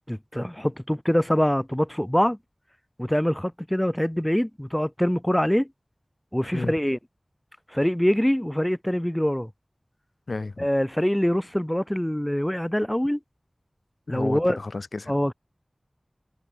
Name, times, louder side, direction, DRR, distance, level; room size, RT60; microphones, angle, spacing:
voice 1, 0.1-2.4 3.0-5.7 6.3-7.0 7.7-9.5 10.6-13.2 14.1-14.6 15.1-15.3, equal, 10° left, 1.2 m, -24 dB
voice 2, 10.3-10.7 14.1-15.1, left 3 dB, 80° left, 2.3 m, -32 dB
wide cardioid pair, 45°, 0 cm